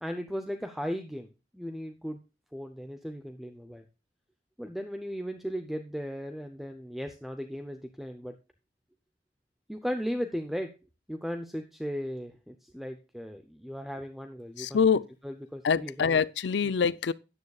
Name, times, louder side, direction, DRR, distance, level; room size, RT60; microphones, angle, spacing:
voice 1, 0.0-1.3 1.5-2.2 2.5-3.8 4.6-8.3 9.7-10.7 11.1-14.8 15.2-16.2 16.6-16.7, equal, ahead, 0.6 m, -36 dB
voice 2, 14.6-15.0 15.6-17.1, left 6 dB, 80° left, 0.5 m, -25 dB
13.0 x 9.6 x 2.3 m
head